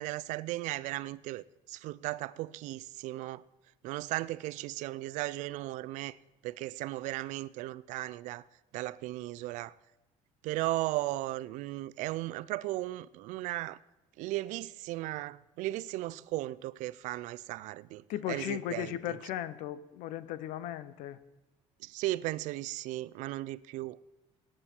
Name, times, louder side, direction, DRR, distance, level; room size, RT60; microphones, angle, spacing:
voice 1, 0.0-3.4 3.8-6.2 6.4-8.4 8.7-9.7 10.4-13.8 14.2-18.9 21.8-24.0, right 17 dB, 80° right, 0.4 m, -36 dB
voice 2, 18.1-21.2, left 12 dB, 90° left, 0.7 m, -36 dB
18.0 x 8.9 x 4.4 m
cardioid pair, 160°, 13 cm